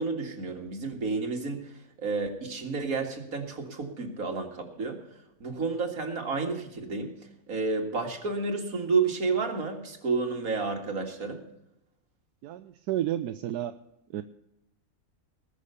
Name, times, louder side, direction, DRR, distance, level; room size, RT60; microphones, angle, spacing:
voice 1, 0.0-5.0 5.4-7.2 7.5-11.4, right 4 dB, 60° right, 3 dB, 2.5 m, -30 dB
voice 2, 12.4-13.7 14.1-14.2, right 12 dB, 85° right, 9 dB, 1.2 m, -31 dB
20.0 x 6.7 x 6.7 m, 0.85 s
omnidirectional pair, 1.6 m